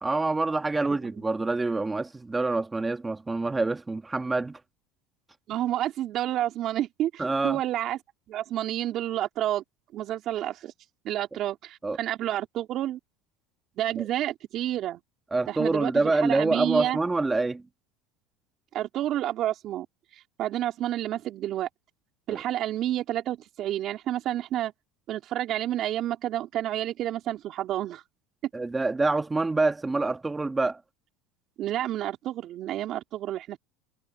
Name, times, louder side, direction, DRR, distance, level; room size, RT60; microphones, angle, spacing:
voice 1, 0.0-4.6 7.2-7.6 11.8-12.0 15.3-17.6 22.3-22.4 28.5-30.8, right 3 dB, 15° right, 1.5 m, -26 dB
voice 2, 5.5-8.0 8.3-9.6 9.9-10.7 11.0-13.0 13.8-15.0 15.5-17.0 18.7-19.9 20.1-21.7 22.3-24.7 25.1-28.0 31.6-33.6, right 12 dB, 50° right, 3.6 m, -30 dB
supercardioid pair, 105°, 0 cm